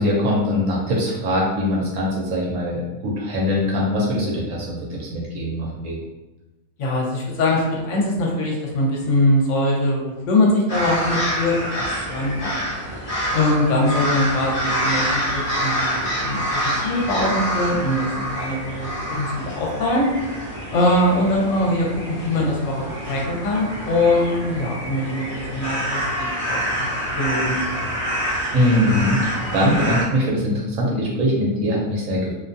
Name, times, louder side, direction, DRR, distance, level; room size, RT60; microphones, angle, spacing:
voice 1, 0.0-6.0 28.5-32.3, left 1 dB, 70° right, -3 dB, 1.0 m, -22 dB
voice 2, 6.8-12.5 13.3-20.1 20.7-27.9, left 1 dB, 65° left, -2 dB, 0.9 m, -22 dB
sound 1, 10.7-30.0, equal, 40° left, 0.6 m, -27 dB
2.5 x 2.2 x 2.6 m, 1.1 s
omnidirectional pair, 1.5 m